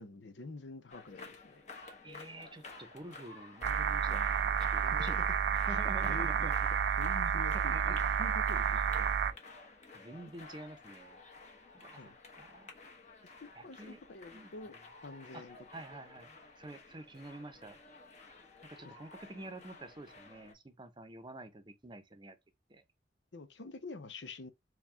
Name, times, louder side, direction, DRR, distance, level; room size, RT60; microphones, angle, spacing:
voice 1, 0.0-1.6 5.7-6.5 7.0-9.1 11.9-12.1 13.2-14.8 15.0-15.6 23.3-24.5, left 3 dB, 85° left, 0.7 m, -47 dB
sound 1, 0.9-20.5, left 3 dB, 40° left, 1.1 m, -53 dB
voice 2, 2.0-6.5 7.5-8.2 8.8-8.9 9.9-11.2 11.7-12.7 13.5-14.0 14.3-14.5 15.3-15.4 15.7-17.8 18.6-22.4 22.7-22.8, right 1 dB, 25° right, 0.7 m, -48 dB
sound 2, 3.6-9.3, right 7 dB, 70° right, 0.4 m, -30 dB
4.7 x 2.3 x 3.4 m
head